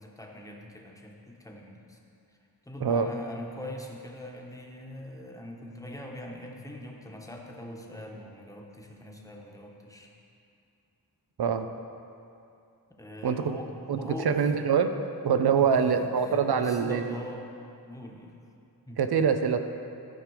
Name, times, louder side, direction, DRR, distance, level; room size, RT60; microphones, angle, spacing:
voice 1, 0.0-2.0 2.6-10.1 13.0-13.7 14.0-14.5 15.5-17.5 17.9-18.3 18.9-19.0, left 1 dB, 10° left, -1 dB, 1.2 m, -42 dB
voice 2, 13.2-13.6 13.9-14.0 14.2-14.9 15.2-17.0 19.0-19.6, right 6 dB, 80° right, 8 dB, 0.7 m, -24 dB
13.5 x 5.2 x 4.9 m, 2.6 s
wide cardioid pair, 75°, 38 cm